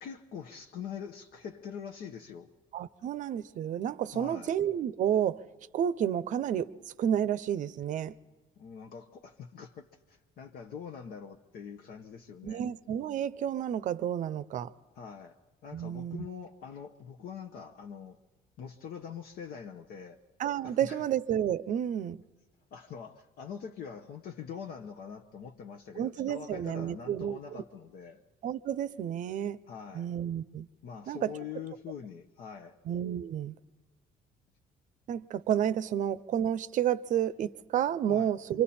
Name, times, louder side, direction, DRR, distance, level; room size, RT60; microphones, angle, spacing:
voice 1, 0.0-2.5 4.1-4.5 8.6-12.6 15.0-15.4 15.6-18.2 18.6-20.2 20.6-21.1 22.7-28.2 29.7-30.1 30.8-32.8 38.1-38.3, left 7 dB, 65° left, 1.0 m, -44 dB
voice 2, 2.7-5.4 5.7-6.7 7.0-8.1 12.4-14.7 15.7-16.3 20.4-22.2 26.0-27.6 28.4-29.6 29.9-30.7 31.1-31.3 32.9-33.6 35.1-38.6, right 10 dB, 50° right, 0.6 m, -30 dB
28.0 x 25.0 x 4.3 m
cardioid pair, 155°, 16 cm